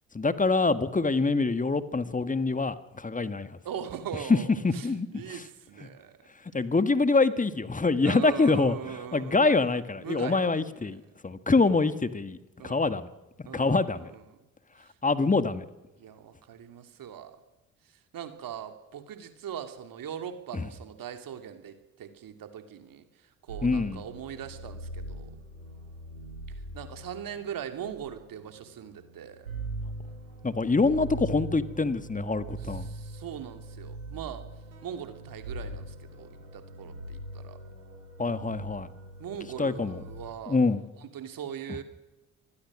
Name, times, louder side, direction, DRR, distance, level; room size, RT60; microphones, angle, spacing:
voice 1, 0.1-3.6 4.3-4.4 4.6-5.5 5.8-5.9 6.5-12.4 12.6-13.1 13.5-14.1 15.0-15.7 20.5-20.7 23.6-24.0 30.4-32.9 38.2-38.9 39.6-40.0 40.5-40.9 41.7-41.8, left 3 dB, 20° left, 12 dB, 1.8 m, -25 dB
voice 2, 3.6-4.9 5.1-6.2 8.0-10.9 11.6-11.8 12.6-12.8 13.5-14.0 16.0-17.4 18.1-23.1 23.5-25.3 26.7-29.5 32.8-34.4 34.8-37.6 39.2-40.6 41.1-41.8, right 9 dB, 55° right, 8 dB, 2.7 m, -40 dB
sound 1, 23.5-40.3, right 2 dB, 85° right, 3.8 m, -42 dB
25.5 x 20.0 x 6.3 m, 1.0 s
figure-of-eight pair, 45°, 42 cm